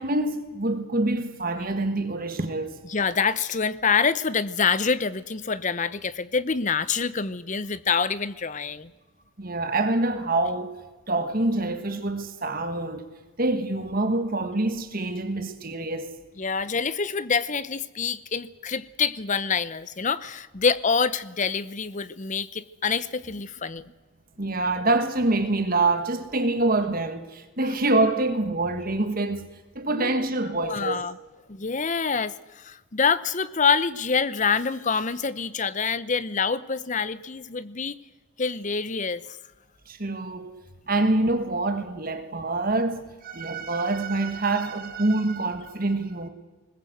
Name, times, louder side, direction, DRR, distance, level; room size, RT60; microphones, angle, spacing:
voice 1, 0.0-2.8 9.4-10.7 11.1-13.1 13.4-16.2 24.4-29.5 29.7-31.0 39.9-40.6 40.9-46.3, right 2 dB, 40° right, 1.6 m, -26 dB
voice 2, 2.9-8.9 16.4-23.9 30.0-30.3 30.6-31.2 31.5-37.9 38.4-39.4, left 5 dB, 35° left, 0.7 m, -26 dB
21.0 x 20.5 x 7.9 m
head